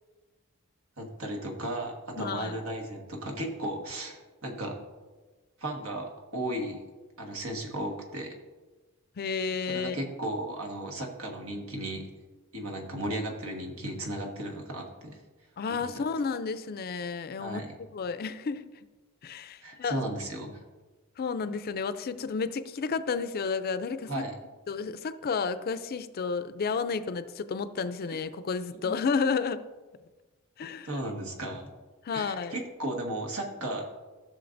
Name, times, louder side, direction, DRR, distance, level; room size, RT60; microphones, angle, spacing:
voice 1, 1.0-4.8 5.6-6.8 7.2-8.3 9.7-12.1 12.5-15.2 15.7-16.0 17.4-17.7 19.6-20.6 24.1-24.3 28.8-29.0 30.8-31.7 32.1-33.9, right 1 dB, 80° right, 1 dB, 1.5 m, -35 dB
voice 2, 2.2-2.5 9.2-10.0 15.6-17.6 17.9-18.6 19.2-20.0 21.2-24.1 24.7-29.6 30.6-30.9 32.1-32.5, left 5 dB, 45° left, 12 dB, 0.4 m, -31 dB
14.5 x 6.4 x 2.6 m, 1.3 s
head